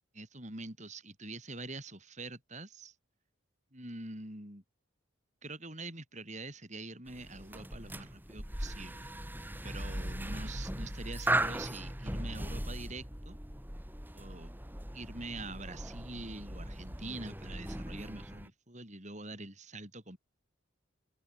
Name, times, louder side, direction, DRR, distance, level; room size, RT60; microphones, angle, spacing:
voice 1, 0.1-2.9 3.7-4.6 5.4-9.1 9.6-13.4 14.1-14.5 14.9-20.2, right 2 dB, 35° right, 6.6 m, -45 dB
sound 1, 7.1-18.5, right 1 dB, 10° right, 3.6 m, -38 dB
open air
head